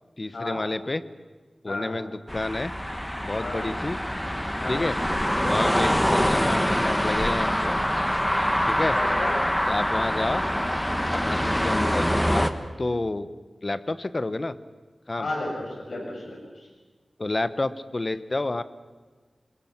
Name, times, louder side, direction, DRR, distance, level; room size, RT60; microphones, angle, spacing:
voice 1, 0.2-1.0 1.6-2.7 3.2-4.0 4.7-5.0 5.4-8.1 8.6-9.0 9.7-10.4 11.1-12.4 12.8-13.3 13.6-14.5 15.1-15.3 17.2-18.6, left 2 dB, 35° left, 14 dB, 1.0 m, -29 dB
voice 2, 1.7-2.0 3.4-3.6 4.6-4.9 8.9-9.4 15.2-16.7, left 2 dB, 70° left, -1 dB, 7.5 m, -33 dB
sound 1, 2.3-12.5, equal, 5° left, 1.3 m, -25 dB
27.0 x 21.5 x 6.0 m, 1.4 s
wide cardioid pair, 100°, 0 cm